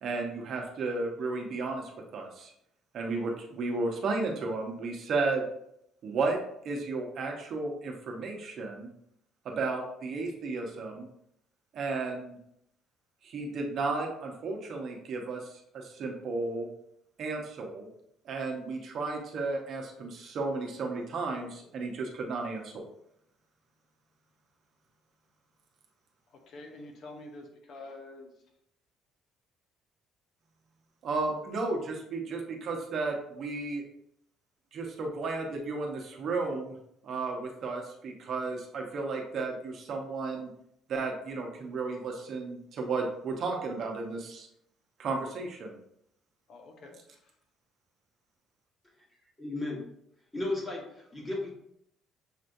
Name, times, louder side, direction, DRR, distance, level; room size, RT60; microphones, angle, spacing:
voice 1, 0.0-2.5 2.9-5.5 6.0-6.4 6.6-8.9 9.4-11.1 11.7-12.4 13.2-16.7 17.2-17.9 18.2-22.8 31.0-33.8 34.7-36.8 37.0-40.5 40.9-44.5 45.0-45.8, right 3 dB, 50° right, 1 dB, 0.9 m, -33 dB
voice 2, 26.3-28.3 46.5-47.3, left 2 dB, 55° left, 3 dB, 0.8 m, -47 dB
voice 3, 49.4-49.8 50.3-51.5, left 2 dB, 15° left, -2 dB, 1.4 m, -34 dB
6.5 x 3.1 x 2.6 m, 0.74 s
cardioid pair, 135°, 0 cm